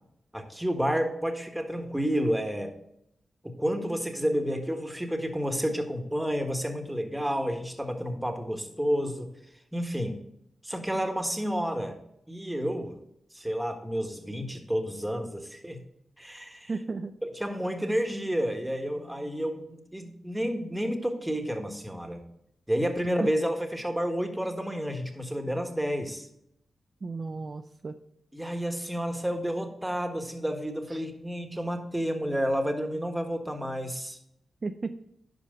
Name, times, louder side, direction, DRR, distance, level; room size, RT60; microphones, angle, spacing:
voice 1, 0.3-2.7 3.4-9.3 9.7-10.2 10.6-12.0 12.3-12.9 13.3-15.8 16.2-16.7 17.3-22.2 22.7-26.3 28.3-34.2, equal, 5° right, 5 dB, 1.5 m, -30 dB
voice 2, 16.7-17.1 23.2-23.3 27.0-28.0 30.9-31.0 34.6-35.0, right 3 dB, 45° right, 7 dB, 0.4 m, -34 dB
11.0 x 5.0 x 3.8 m, 0.76 s
cardioid pair, 50°, 0 cm